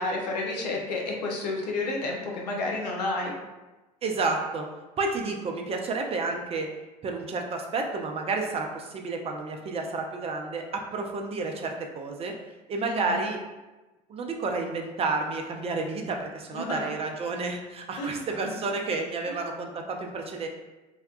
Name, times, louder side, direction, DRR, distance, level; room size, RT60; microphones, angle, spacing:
voice 1, 0.0-3.3 12.8-13.2 16.5-16.9 18.0-18.2 19.3-19.4, left 2 dB, 80° left, -1 dB, 0.6 m, -31 dB
voice 2, 4.0-4.7 5.0-6.7 7.0-12.4 12.7-13.4 14.1-20.5, right 3 dB, 30° right, 2 dB, 0.4 m, -30 dB
2.7 x 2.2 x 2.3 m, 1.1 s
hypercardioid pair, 70°, 20 cm